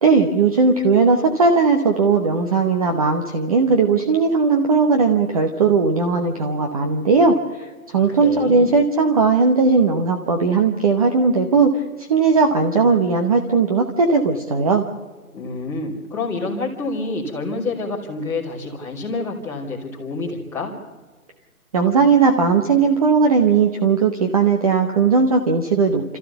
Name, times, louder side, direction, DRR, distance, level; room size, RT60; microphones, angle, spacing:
voice 1, 0.0-7.7 7.9-11.8 12.1-14.9 21.7-26.0, right 4 dB, 25° right, 4 dB, 1.0 m, -17 dB
voice 2, 7.9-8.7 15.3-20.7, left 3 dB, 5° left, -6 dB, 3.0 m, -28 dB
27.0 x 14.5 x 7.0 m, 1.4 s
hypercardioid pair, 160°, 44 cm